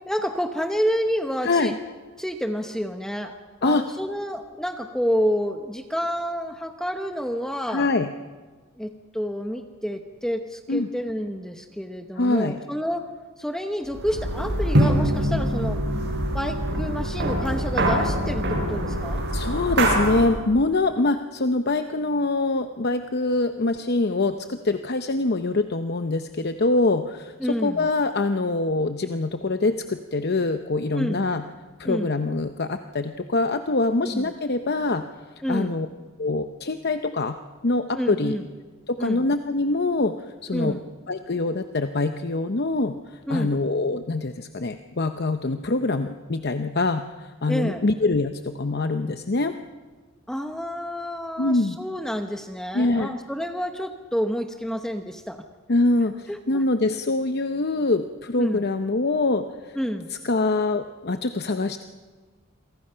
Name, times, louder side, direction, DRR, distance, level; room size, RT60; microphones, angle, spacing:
voice 1, 0.1-1.7 2.2-3.3 3.6-7.9 8.8-13.1 13.4-15.8 16.3-19.2 27.4-27.9 30.9-31.3 31.8-32.2 34.0-34.3 35.4-35.8 37.9-38.4 39.0-39.3 40.5-40.9 43.3-43.6 47.5-47.8 50.3-55.4 56.3-56.6 58.4-58.6 59.8-60.1, equal, 5° left, 5 dB, 1.0 m, -29 dB
voice 2, 1.4-1.8 3.6-3.8 7.7-8.1 10.7-10.9 12.2-12.6 19.3-31.4 31.8-35.0 35.5-35.9 36.2-37.4 37.6-38.4 38.9-40.1 40.4-40.8 41.1-49.5 51.4-51.8 52.7-53.1 55.7-59.8 60.2-61.8, left 2 dB, 50° left, 8 dB, 0.7 m, -24 dB
sound 1, 13.9-20.4, right 1 dB, 55° right, 7.8 m, -24 dB
27.5 x 23.5 x 5.7 m, 1.4 s
head